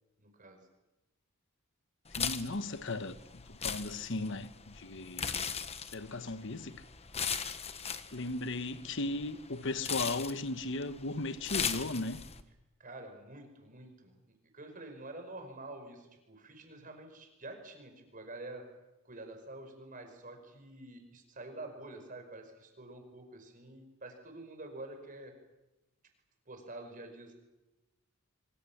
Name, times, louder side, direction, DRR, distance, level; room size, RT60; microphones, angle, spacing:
voice 1, 0.2-0.6 12.8-18.6 19.0-25.3 26.5-27.3, right 2 dB, 40° right, 5.2 m, -48 dB
sound 1, 2.1-12.4, left 7 dB, 30° left, 1.2 m, -39 dB
voice 2, 2.2-5.3 5.9-6.8 8.1-12.2, left 2 dB, 55° left, 1.2 m, -37 dB
24.5 x 24.5 x 7.3 m
head